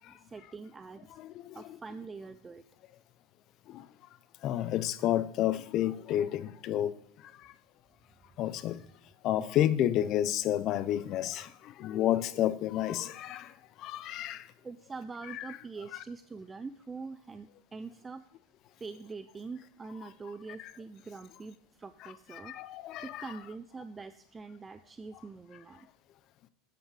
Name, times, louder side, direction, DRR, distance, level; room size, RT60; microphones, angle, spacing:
voice 1, 0.1-1.2 1.5-2.6 8.7-8.8 14.6-18.2 18.8-22.5 23.0-25.9, right 4 dB, 15° right, 0.4 m, -44 dB
voice 2, 1.2-1.5 3.7-3.8 4.4-6.9 8.4-8.8 9.2-11.5 11.8-13.5 13.8-14.4 15.3-15.5 20.6-20.7 22.3-23.2, left 12 dB, 45° left, 0.6 m, -30 dB
9.2 x 7.9 x 4.9 m
supercardioid pair, 125°, 0 cm